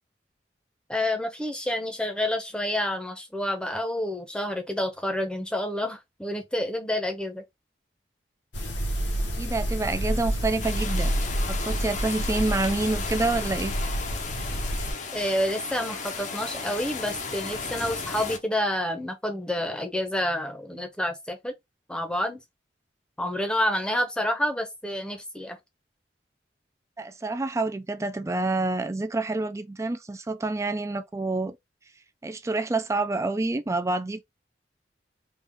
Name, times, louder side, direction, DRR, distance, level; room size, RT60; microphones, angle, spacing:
voice 1, 0.9-7.4 15.1-21.5 21.9-22.4 23.2-25.6, left 1 dB, 5° left, 0.8 m, -29 dB
sound 1, 8.5-14.9, equal, 85° left, 1.2 m, -29 dB
voice 2, 9.4-11.1 11.5-13.7 27.0-31.6 32.2-34.2, right 2 dB, 15° right, 0.4 m, -28 dB
sound 2, 10.6-18.4, left 4 dB, 40° left, 0.7 m, -35 dB
3.8 x 2.4 x 3.5 m
head